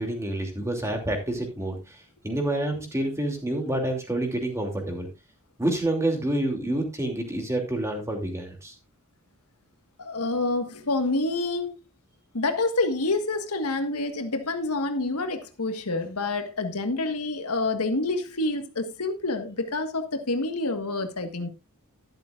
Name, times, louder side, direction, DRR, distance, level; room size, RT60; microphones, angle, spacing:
voice 1, 0.0-2.0 2.2-5.1 5.6-8.7, right 1 dB, 15° right, 2.7 m, -28 dB
voice 2, 10.0-11.7 12.3-21.5, left 2 dB, 85° left, 1.6 m, -28 dB
12.0 x 11.5 x 2.5 m
head